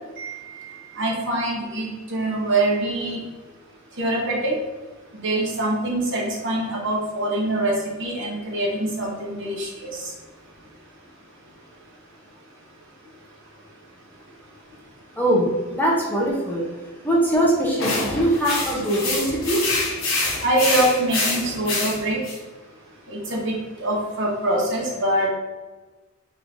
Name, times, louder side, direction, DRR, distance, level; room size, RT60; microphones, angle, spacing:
voice 1, 0.2-3.2 4.0-4.5 5.2-10.1 20.4-22.2 23.1-25.3, right 1 dB, 65° right, -3 dB, 1.0 m, -24 dB
voice 2, 15.2-16.6 17.0-19.6, right 1 dB, 10° left, -4 dB, 0.6 m, -22 dB
sound 1, 17.8-22.4, left 2 dB, 75° left, 1.0 m, -26 dB
3.7 x 3.1 x 2.5 m, 1.3 s
head